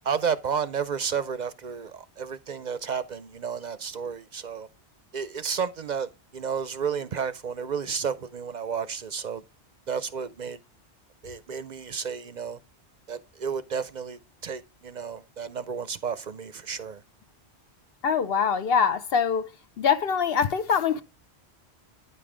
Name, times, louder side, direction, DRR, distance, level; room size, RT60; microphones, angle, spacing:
voice 1, 0.0-4.7 5.1-9.4 9.9-10.6 11.2-12.6 13.1-17.0, right 6 dB, 55° right, 0.6 m, -32 dB
voice 2, 18.0-19.5 19.8-21.0, left 6 dB, 65° left, 0.8 m, -23 dB
9.7 x 5.5 x 4.8 m
omnidirectional pair, 1.1 m